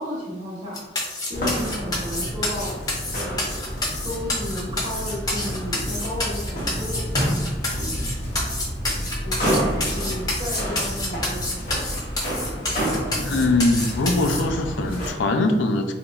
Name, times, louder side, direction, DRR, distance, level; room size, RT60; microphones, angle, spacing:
voice 1, 0.0-2.7 3.1-7.0 9.2-12.1, left 1 dB, 40° right, -9 dB, 0.9 m, -33 dB
sound 1, 0.7-14.4, left 2 dB, 20° left, 0.6 m, -28 dB
sound 2, 1.3-15.1, equal, 50° left, 0.9 m, -29 dB
voice 2, 13.2-15.9, left 2 dB, 85° left, 6 dB, 0.4 m, -22 dB
3.5 x 2.9 x 2.3 m, 1.1 s
head